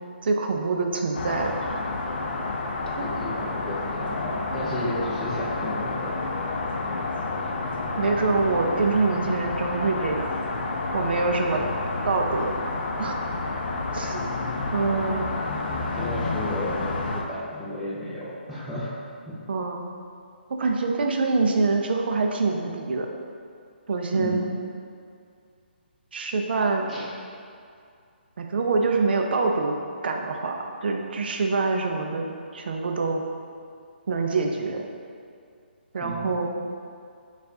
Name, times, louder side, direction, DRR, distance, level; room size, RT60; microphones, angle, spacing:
voice 1, 0.2-1.5 3.0-3.1 8.0-10.3 10.9-11.7 12.0-12.7 13.0-13.2 13.9-14.3 14.7-15.3 19.5-19.9 20.6-23.1 23.9-24.5 26.1-26.9 28.4-29.8 30.0-30.5 30.8-32.3 32.5-33.2 34.1-34.9 35.9-36.5, right 3 dB, 65° right, 2 dB, 0.4 m, -25 dB
sound 1, 1.1-17.2, left 3 dB, 55° left, 0.4 m, -30 dB
voice 2, 3.0-6.3 6.8-7.0 11.5-11.6 14.9-15.2 15.8-18.9 19.3-19.4 24.1-24.5 26.9-27.0 36.0-36.3, left 1 dB, ahead, -11 dB, 0.5 m, -34 dB
4.4 x 2.4 x 2.7 m, 2.3 s
hypercardioid pair, 155°, 6 cm